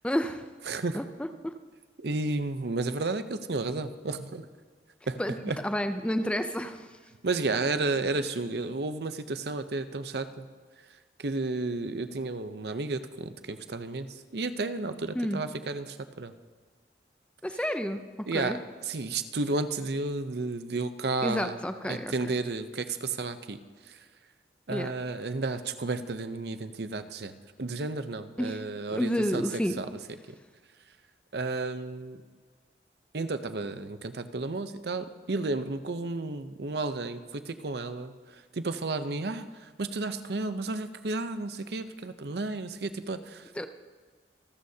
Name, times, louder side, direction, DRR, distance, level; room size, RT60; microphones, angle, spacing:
voice 1, 0.0-0.5 0.9-1.5 5.2-5.4 5.6-7.0 15.2-15.4 17.4-18.6 21.2-22.1 24.7-24.9 28.4-28.6 28.9-29.8 43.6-43.7, equal, 5° left, 8 dB, 0.4 m, -30 dB
voice 2, 0.7-1.0 2.0-4.5 5.1-5.6 7.2-10.4 11.2-16.3 18.3-21.5 21.9-23.6 23.9-24.0 24.7-27.3 27.6-29.4 29.8-29.9 31.3-32.2 33.1-43.5, right 3 dB, 65° right, 10 dB, 0.7 m, -32 dB
27.0 x 13.0 x 2.8 m, 1.5 s
head